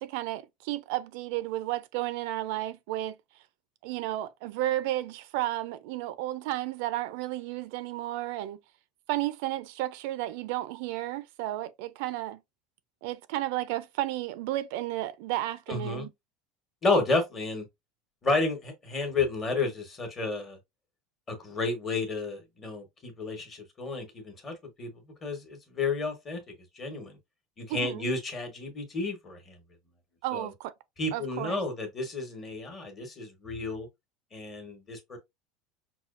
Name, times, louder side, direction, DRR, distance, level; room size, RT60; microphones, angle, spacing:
voice 1, 0.0-3.2 3.8-8.6 9.1-12.4 13.0-16.1 27.7-28.1 30.2-30.7 31.1-31.6, right 15 dB, 65° right, 0.4 m, -32 dB
voice 2, 15.7-16.1 16.8-17.6 18.2-20.6 21.3-24.9 25.2-26.4 26.8-27.1 27.6-29.6 30.3-30.5 31.0-33.9 34.3-35.2, left 3 dB, 20° left, 1.1 m, -31 dB
5.7 x 2.3 x 2.5 m
cardioid pair, 170°, 0 cm